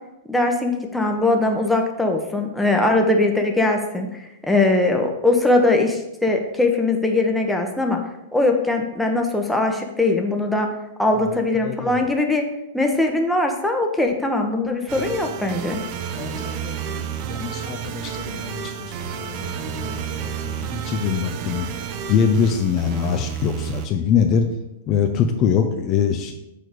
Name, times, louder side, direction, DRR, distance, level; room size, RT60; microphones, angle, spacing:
voice 1, 0.3-8.0 8.3-10.7 11.0-12.5 12.7-15.8, left 2 dB, 5° left, 2 dB, 1.0 m, -21 dB
voice 2, 11.6-11.9 16.2-18.9 19.2-21.7 22.1-24.5 24.9-26.3, left 7 dB, 40° left, 5 dB, 0.6 m, -23 dB
sound 1, 14.9-23.9, right 8 dB, 45° right, 0.6 m, -31 dB
6.7 x 4.5 x 5.0 m, 0.91 s
hypercardioid pair, 110°, 0 cm